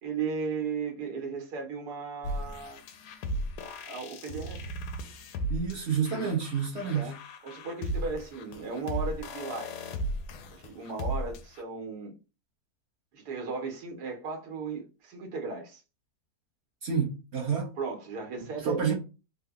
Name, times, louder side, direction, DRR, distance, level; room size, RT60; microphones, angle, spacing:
voice 1, 0.0-2.8 3.8-4.7 6.1-6.3 6.9-7.1 7.4-9.8 10.5-12.1 13.1-15.8 17.8-19.0, right 5 dB, 85° right, 1.4 m, -36 dB
sound 1, 2.2-11.6, equal, 90° left, 1.1 m, -36 dB
voice 2, 5.5-7.1 16.8-17.7 18.6-19.0, right 6 dB, 55° right, 0.9 m, -29 dB
3.6 x 2.0 x 3.5 m
omnidirectional pair, 1.7 m